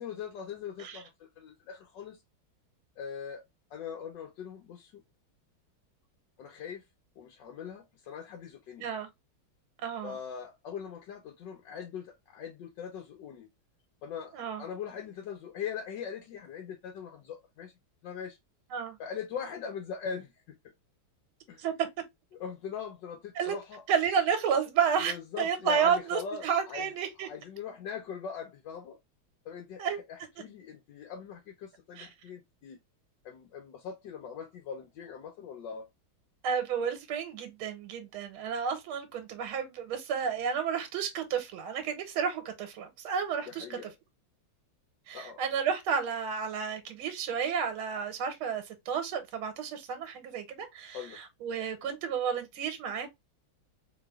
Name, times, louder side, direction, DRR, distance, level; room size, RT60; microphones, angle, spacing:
voice 1, 0.0-2.2 3.0-3.4 3.7-5.0 6.4-6.8 7.2-8.9 10.0-13.5 14.0-17.7 18.0-18.4 19.0-20.6 21.5-21.7 22.3-23.8 25.1-26.9 27.2-29.0 29.4-32.8 33.2-35.9 43.5-43.9 45.1-45.4 50.9-51.2, left 7 dB, 70° left, 1.3 m, -41 dB
voice 2, 9.8-10.2 14.3-14.6 18.7-19.0 21.6-21.9 23.4-23.5 23.9-27.3 29.8-30.0 32.0-32.1 36.4-43.8 45.1-53.1, right 7 dB, 90° right, 1.7 m, -31 dB
4.0 x 3.3 x 2.2 m
omnidirectional pair, 2.2 m